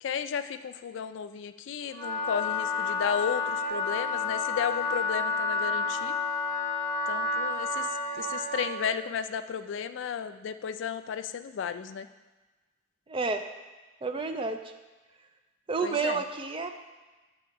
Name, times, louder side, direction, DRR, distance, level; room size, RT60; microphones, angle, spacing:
voice 1, 0.0-6.2 7.1-7.9 8.1-12.1 15.8-16.2, left 7 dB, 70° left, 11 dB, 0.3 m, -33 dB
Wind instrument woodwind instrument, 1.9-8.9, left 3 dB, 5° left, 1.2 m, -30 dB
voice 2, 13.1-13.4 14.0-14.6 15.7-16.7, right 4 dB, 25° right, 7 dB, 0.4 m, -30 dB
9.2 x 3.5 x 4.6 m, 1.2 s
head